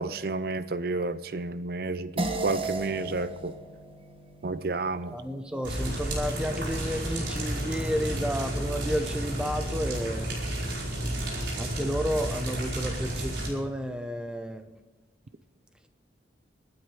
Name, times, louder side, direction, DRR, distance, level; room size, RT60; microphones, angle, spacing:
voice 1, 0.0-3.5 4.4-5.2, right 3 dB, 55° right, 13 dB, 0.6 m, -31 dB
sound 1, 2.2-6.9, right 2 dB, 30° right, 1.2 m, -37 dB
voice 2, 5.1-10.3 11.6-14.7, equal, 5° right, 7 dB, 0.8 m, -31 dB
sound 2, 5.6-13.5, right 1 dB, 75° right, 4.9 m, -31 dB
24.0 x 9.5 x 4.9 m, 1.2 s
head